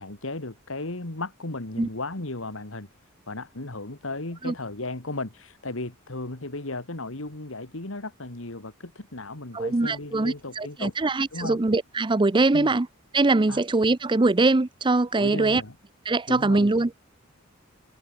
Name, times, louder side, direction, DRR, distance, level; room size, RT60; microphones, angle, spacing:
voice 1, 0.0-2.9 3.3-10.9 11.3-11.6 12.5-12.8 13.5-13.6 15.2-15.8 16.3-16.7, left 2 dB, 65° left, 2.3 m, -35 dB
voice 2, 9.5-12.9 13.1-15.6 16.1-16.9, right 2 dB, 25° right, 0.6 m, -22 dB
head